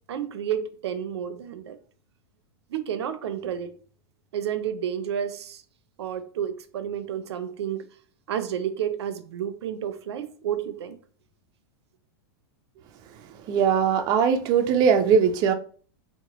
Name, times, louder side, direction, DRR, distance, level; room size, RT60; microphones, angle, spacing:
voice 1, 0.1-1.8 2.7-3.7 4.3-5.6 6.0-7.9 8.3-11.0, right 9 dB, 90° right, 0.5 m, -30 dB
voice 2, 13.5-15.5, right 7 dB, 30° right, 0.4 m, -20 dB
3.9 x 2.1 x 2.9 m
supercardioid pair, 150°, 14 cm